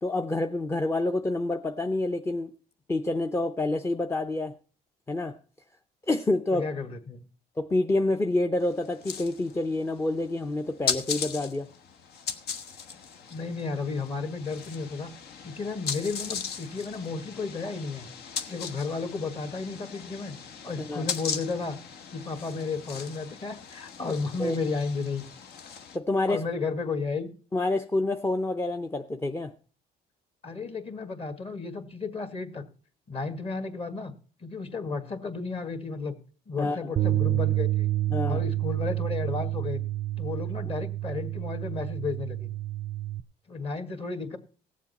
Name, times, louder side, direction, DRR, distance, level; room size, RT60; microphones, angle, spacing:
voice 1, 0.0-2.5 2.9-4.5 5.1-5.4 6.1-6.7 7.6-11.7 20.9-21.1 24.0-24.1 24.4-24.6 25.9-26.4 27.5-29.5 36.6-36.8 38.1-38.4, left 2 dB, 15° left, 6 dB, 0.6 m, -27 dB
voice 2, 6.5-7.2 13.3-15.1 15.4-18.1 18.5-20.3 20.6-21.8 22.1-25.3 26.3-27.3 30.4-32.6 33.1-34.1 34.4-36.2 36.5-37.9 38.3-39.8 40.2-42.5 43.5-44.4, left 4 dB, 35° left, 8 dB, 1.8 m, -33 dB
sound 1, 8.6-26.0, left 6 dB, 70° left, 1.2 m, -38 dB
Bass guitar, 37.0-43.2, right 15 dB, 35° right, 0.4 m, -29 dB
18.0 x 7.4 x 4.2 m, 0.39 s
cardioid pair, 110°, 17 cm